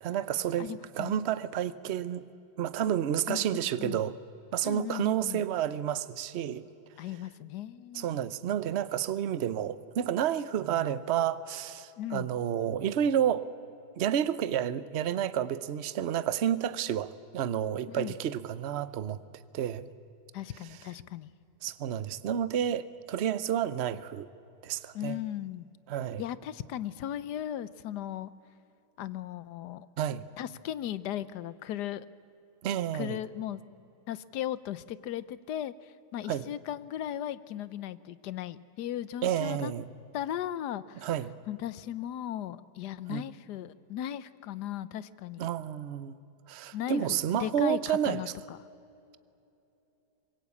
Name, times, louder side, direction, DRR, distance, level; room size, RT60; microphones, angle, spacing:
voice 1, 0.0-0.7 1.0-2.2 2.6-4.2 4.5-6.6 7.9-13.5 14.0-19.2 19.5-19.9 21.6-24.3 24.6-25.2 25.9-26.2 30.0-30.2 32.6-33.2 36.3-36.5 39.2-39.9 41.0-41.3 43.1-43.2 45.4-46.2 46.5-48.2, right 10 dB, 50° right, 0.9 m, -30 dB
voice 2, 0.6-1.2 3.3-4.0 4.6-5.4 7.0-8.1 12.0-12.3 17.9-18.2 20.3-21.3 24.9-25.7 26.2-28.3 29.0-29.9 30.4-32.0 32.9-33.6 34.1-35.7 36.1-39.7 40.1-41.1 41.5-45.5 46.7-48.6, left 11 dB, 85° left, 1.3 m, -37 dB
24.5 x 22.0 x 8.4 m
omnidirectional pair, 1.7 m